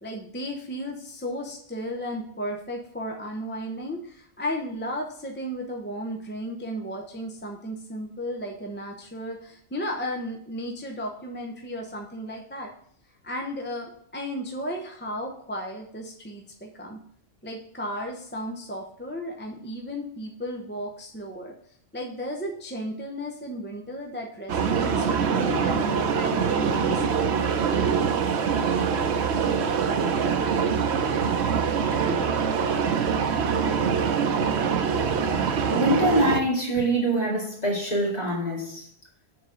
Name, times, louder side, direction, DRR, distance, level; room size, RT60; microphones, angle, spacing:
voice 1, 0.0-12.7 13.2-17.0 17.4-21.5 21.9-27.4, equal, 10° left, 1 dB, 0.7 m, -34 dB
sound 1, 24.5-36.4, right 6 dB, 85° right, 1.0 m, -24 dB
voice 2, 35.7-38.9, right 1 dB, 40° left, -4 dB, 2.3 m, -24 dB
6.4 x 3.9 x 6.2 m, 0.64 s
omnidirectional pair, 1.1 m